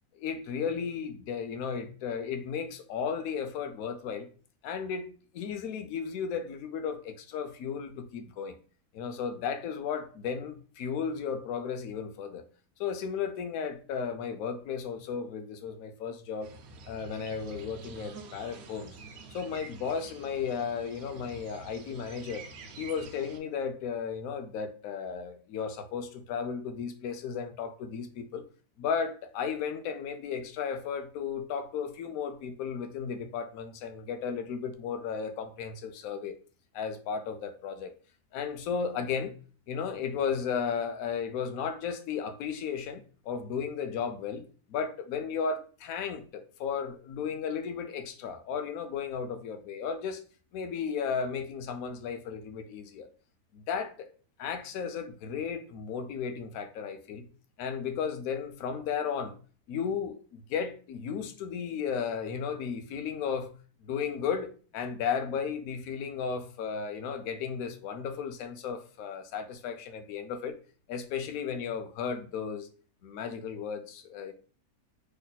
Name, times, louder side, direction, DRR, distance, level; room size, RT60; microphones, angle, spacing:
voice 1, 0.1-4.3 4.6-8.6 8.9-12.5 12.8-16.5 16.9-19.0 19.3-22.4 22.8-28.4 28.8-36.4 36.7-37.9 38.3-39.4 39.7-50.2 50.5-53.1 53.5-54.1 54.4-57.3 57.6-59.4 59.7-63.5 63.8-70.6 70.9-72.7 73.0-74.3, left 6 dB, 75° left, 1.0 m, -34 dB
sound 1, 16.4-23.4, right 3 dB, 65° right, 0.7 m, -48 dB
3.1 x 2.1 x 4.0 m
omnidirectional pair, 1.6 m